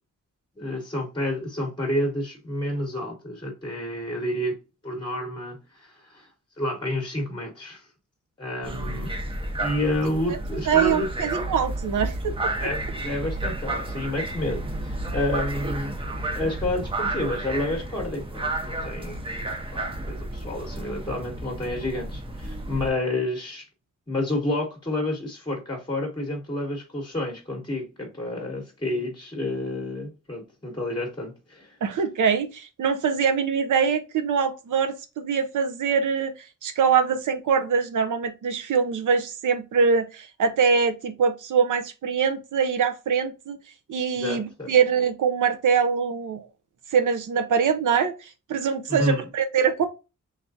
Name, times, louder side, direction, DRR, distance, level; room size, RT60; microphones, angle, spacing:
voice 1, 0.6-4.6 4.8-6.3 6.6-7.9 8.4-9.1 9.6-11.1 12.6-16.0 16.3-19.8 20.1-23.7 24.1-31.8 44.1-44.7 48.9-49.3, left 1 dB, 15° left, 0.9 m, -30 dB
sound 1, 8.6-22.9, right 2 dB, 20° right, 0.5 m, -31 dB
voice 2, 10.7-12.7 31.8-43.6 43.9-46.5 46.9-49.9, right 6 dB, 80° right, 0.6 m, -23 dB
3.5 x 3.3 x 2.6 m
wide cardioid pair, 175°, 31 cm